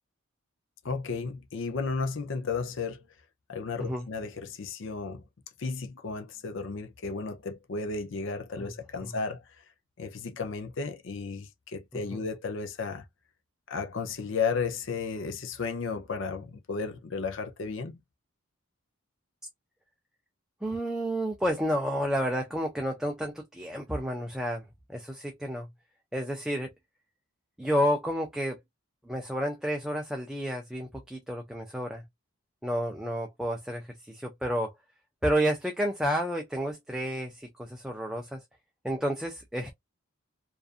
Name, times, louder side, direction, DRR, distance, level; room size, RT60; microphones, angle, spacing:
voice 1, 0.8-3.0 3.5-5.2 5.6-9.6 10.0-13.0 13.7-18.0, left 4 dB, 60° left, 0.5 m, -34 dB
voice 2, 20.6-25.7 26.1-26.7 27.6-28.6 29.1-32.0 32.6-34.7 35.2-38.4 38.8-39.7, equal, 5° right, 0.3 m, -30 dB
2.5 x 2.4 x 2.4 m
head